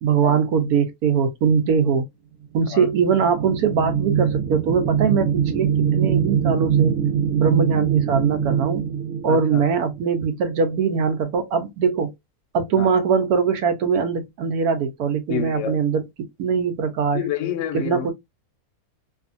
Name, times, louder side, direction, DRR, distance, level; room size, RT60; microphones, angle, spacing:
voice 1, 0.0-2.0 2.5-7.0 7.3-8.8 9.2-12.1 12.5-16.1 16.4-17.2 17.7-18.1, right 6 dB, 85° right, 1.2 m, -21 dB
sound 1, 2.7-10.3, right 8 dB, 65° right, 1.2 m, -23 dB
voice 2, 9.3-9.6 12.8-12.9 15.3-15.8 17.1-18.1, left 10 dB, 65° left, 0.8 m, -28 dB
2.8 x 2.5 x 2.4 m
omnidirectional pair, 1.6 m